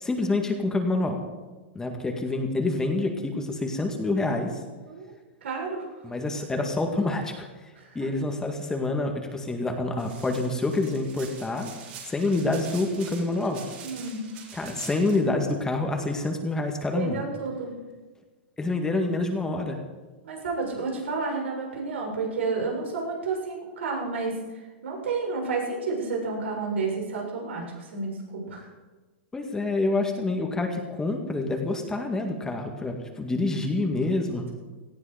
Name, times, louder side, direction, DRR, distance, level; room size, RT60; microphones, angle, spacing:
voice 1, 0.0-1.2 1.7-4.6 6.0-7.5 7.9-11.7 12.0-13.6 14.5-17.2 18.6-19.8 29.3-34.5, left 2 dB, 10° left, 3 dB, 2.0 m, -27 dB
voice 2, 5.4-5.9 7.8-8.1 13.8-14.2 16.9-17.7 20.2-24.4 24.8-27.6 27.9-28.7, right 4 dB, 85° right, -1 dB, 7.3 m, -30 dB
sound 1, 10.0-15.2, right 7 dB, 55° right, 4.3 m, -45 dB
18.5 x 15.0 x 5.1 m, 1.3 s
hypercardioid pair, 140°, 6 cm